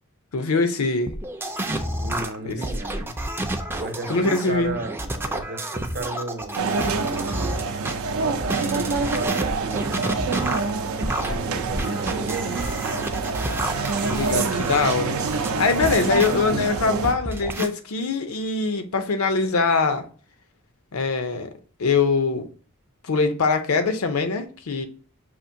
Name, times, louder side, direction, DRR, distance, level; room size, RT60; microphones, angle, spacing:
voice 1, 0.3-1.2 2.4-2.6 4.1-4.8 14.0-20.1 20.9-21.5 21.8-22.5 23.1-24.9, left 4 dB, 90° left, 0.6 m, -23 dB
sound 1, 1.1-7.9 8.4-16.3 16.8-17.7, right 1 dB, 10° right, 0.3 m, -30 dB
voice 2, 2.0-3.1 3.7-7.6 8.2-10.5 11.2-12.7, right 2 dB, 55° right, 0.7 m, -35 dB
sound 2, 6.6-17.1, right 4 dB, 85° right, 0.5 m, -26 dB
5.8 x 2.5 x 2.6 m
head